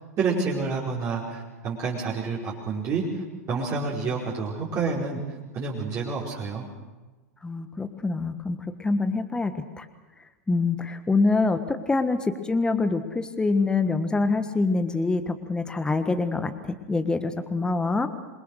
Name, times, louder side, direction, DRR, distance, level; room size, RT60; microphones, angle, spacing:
voice 1, 0.2-5.2 5.5-6.7, right 4 dB, 35° right, -6 dB, 5.1 m, -29 dB
voice 2, 7.4-9.8 10.5-18.1, left 3 dB, 10° left, 9 dB, 1.5 m, -25 dB
27.5 x 22.5 x 6.6 m, 1.2 s
figure-of-eight pair, 95°, 9 cm